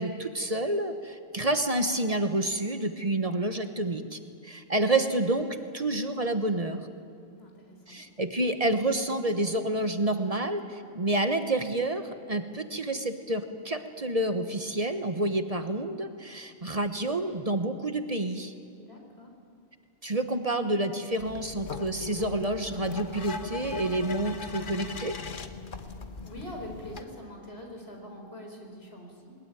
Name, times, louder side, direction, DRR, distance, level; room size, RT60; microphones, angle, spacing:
voice 1, 0.0-6.9 7.9-12.0 12.3-18.5 20.0-25.2, right 1 dB, 35° right, 7 dB, 1.2 m, -29 dB
voice 2, 7.2-8.0 18.7-19.3 26.2-29.4, equal, 75° left, 2 dB, 4.6 m, -44 dB
sound 1, 21.2-27.0, left 4 dB, 55° left, 1.3 m, -39 dB
21.5 x 20.5 x 9.1 m, 2.4 s
omnidirectional pair, 1.1 m